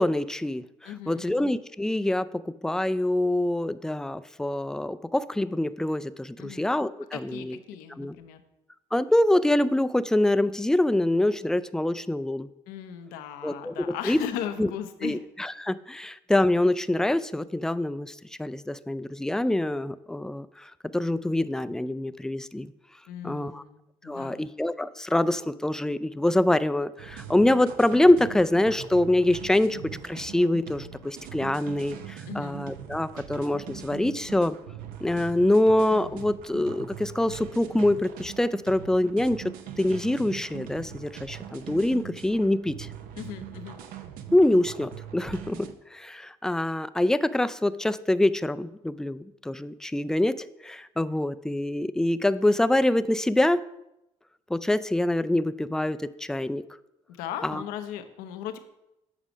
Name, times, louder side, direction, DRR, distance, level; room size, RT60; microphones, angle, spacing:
voice 1, 0.0-7.6 8.0-8.1 8.9-12.5 13.4-14.2 14.6-14.7 15.0-22.7 23.2-23.6 24.0-34.6 35.0-42.9 44.3-53.7 54.5-56.6 57.4-57.6, left 1 dB, 5° left, 14 dB, 0.3 m, -25 dB
voice 2, 0.8-1.4 6.4-6.7 7.1-8.4 12.7-15.2 23.1-24.5 32.3-32.6 43.2-43.8 57.1-58.6, left 10 dB, 80° left, 9 dB, 0.7 m, -37 dB
sound 1, 27.0-45.7, right 10 dB, 80° right, 0.7 m, -42 dB
7.4 x 4.9 x 5.0 m, 0.87 s
supercardioid pair, 70°, 15 cm